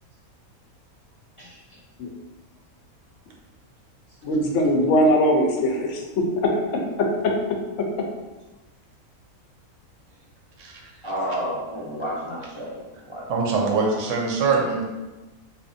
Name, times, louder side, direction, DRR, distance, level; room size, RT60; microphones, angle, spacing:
voice 1, 4.2-6.0 6.4-6.5, equal, 65° left, 1 dB, 0.9 m, -20 dB
voice 2, 11.0-12.8 13.1-13.2 13.6-13.7, equal, 40° left, -7 dB, 0.5 m, -30 dB
voice 3, 13.3-14.8, right 4 dB, 65° right, 0 dB, 0.9 m, -23 dB
4.2 x 2.6 x 2.6 m, 1.1 s
omnidirectional pair, 1.5 m